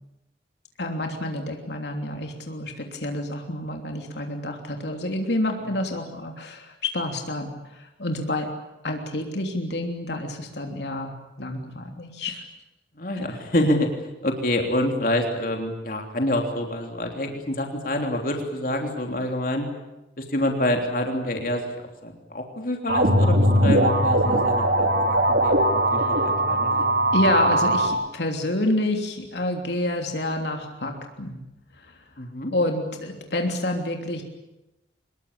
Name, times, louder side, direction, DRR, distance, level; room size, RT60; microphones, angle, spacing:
voice 1, 0.8-8.5 8.8-11.1 11.4-12.4 26.0-26.1 27.1-31.4 31.8-31.9 32.5-34.2, left 1 dB, 75° left, 3 dB, 3.2 m, -28 dB
voice 2, 13.0-13.9 14.2-19.7 20.2-21.7 22.0-26.8 32.2-32.5, left 1 dB, 50° left, 3 dB, 3.2 m, -27 dB
sound 1, 22.9-27.9, right 1 dB, 65° right, 3.0 m, -20 dB
24.5 x 21.0 x 8.7 m, 0.93 s
head